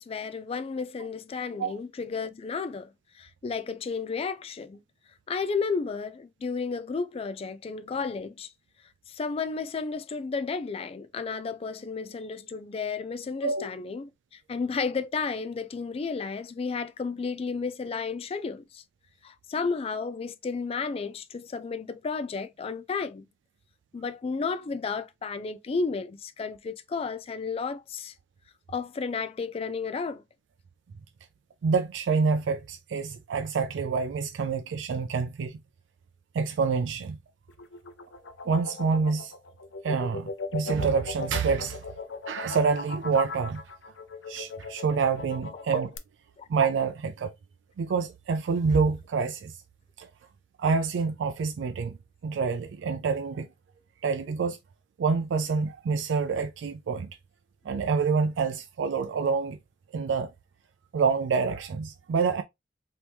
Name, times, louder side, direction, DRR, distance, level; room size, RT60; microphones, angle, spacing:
voice 1, 0.0-4.8 5.3-8.5 9.1-18.8 19.2-23.3 23.9-28.1 28.7-30.2 45.5-45.6 46.4-46.5, left 5 dB, 35° left, 0.3 m, -32 dB
voice 2, 31.6-35.6 36.3-37.2 38.5-39.3 39.8-41.8 42.2-43.6 44.3-45.9 46.5-47.3 47.8-49.6 50.0-50.1 50.6-52.0 52.2-53.5 54.0-54.6 55.0-57.1 57.6-59.6 59.9-60.3 60.9-62.4, right 5 dB, 80° right, 0.3 m, -27 dB
sound 1, 37.5-46.0, left 4 dB, 90° left, 0.5 m, -38 dB
3.0 x 2.8 x 3.4 m
head